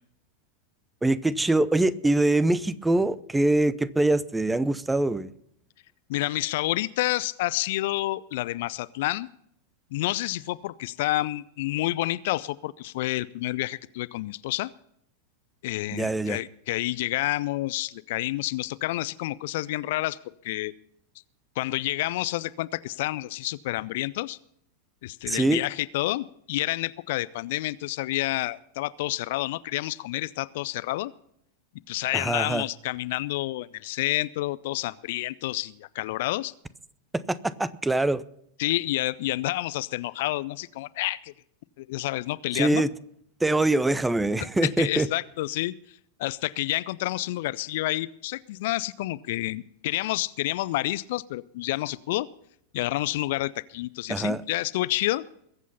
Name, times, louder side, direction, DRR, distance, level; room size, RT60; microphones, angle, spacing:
voice 1, 1.0-5.3 15.9-16.4 25.3-25.6 32.1-32.6 37.3-38.2 42.5-42.9 43.4-45.1 54.1-54.4, right 2 dB, 5° right, 18 dB, 0.7 m, -24 dB
voice 2, 6.1-9.3 9.9-14.7 15.6-20.2 20.4-20.7 21.6-24.4 25.0-31.1 31.9-36.5 38.6-41.3 41.8-42.8 44.6-52.3 52.7-55.2, left 17 dB, 50° left, 18 dB, 0.5 m, -29 dB
21.5 x 8.3 x 5.5 m, 0.72 s
figure-of-eight pair, 90°, 0 cm